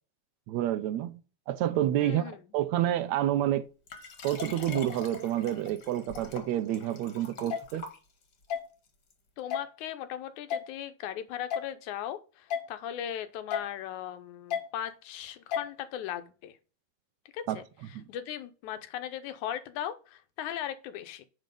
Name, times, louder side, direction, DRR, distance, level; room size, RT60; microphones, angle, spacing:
voice 1, 0.5-1.2 1.5-3.7 4.2-7.9 17.5-17.6 17.9-18.0, right 12 dB, 75° right, 1.9 m, -29 dB
voice 2, 2.0-2.4 9.4-16.5 17.3-17.6 18.1-21.3, left 10 dB, 80° left, 2.3 m, -38 dB
Liquid, 3.9-8.5 9.1-9.2, left 4 dB, 40° left, 1.7 m, -43 dB
sound 1, 7.5-7.6 8.5-8.6 9.5-9.7 10.5-10.6 11.5-11.7 12.5-12.6 13.5-13.7 14.5-14.6 15.5-15.7, left 8 dB, 65° left, 1.7 m, -31 dB
9.1 x 4.0 x 5.2 m
omnidirectional pair, 3.4 m